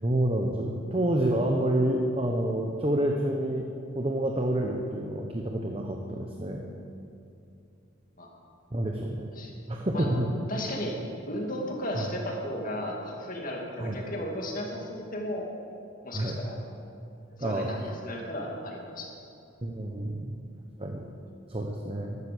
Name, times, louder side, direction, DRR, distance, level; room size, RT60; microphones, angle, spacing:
voice 1, 0.0-3.7 3.9-6.7 8.7-9.3 9.7-10.3 11.9-12.0 13.8-14.0 16.1-16.4 17.4-17.9 19.6-20.3 20.8-21.1 21.5-22.2, right 1 dB, 30° right, 2 dB, 0.9 m, -28 dB
voice 2, 10.5-11.0 11.3-15.5 16.0-16.6 17.4-19.1, left 1 dB, 40° left, -1 dB, 2.4 m, -35 dB
13.5 x 12.0 x 6.8 m, 2.5 s
head